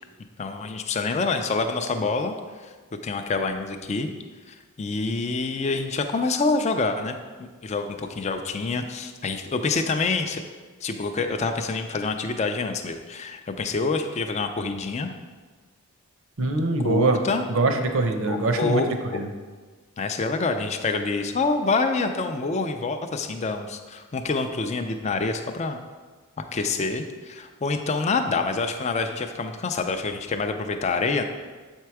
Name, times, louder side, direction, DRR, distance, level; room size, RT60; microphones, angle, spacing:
voice 1, 0.4-2.3 2.6-2.7 3.0-4.1 4.5-10.4 10.8-15.1 16.8-17.4 18.3-19.2 20.0-25.8 26.4-31.2, left 3 dB, 30° left, 6 dB, 0.4 m, -27 dB
voice 2, 16.4-17.2 17.5-18.9 19.1-19.3, right 2 dB, 60° right, 6 dB, 0.7 m, -23 dB
7.6 x 4.5 x 4.7 m, 1.4 s
head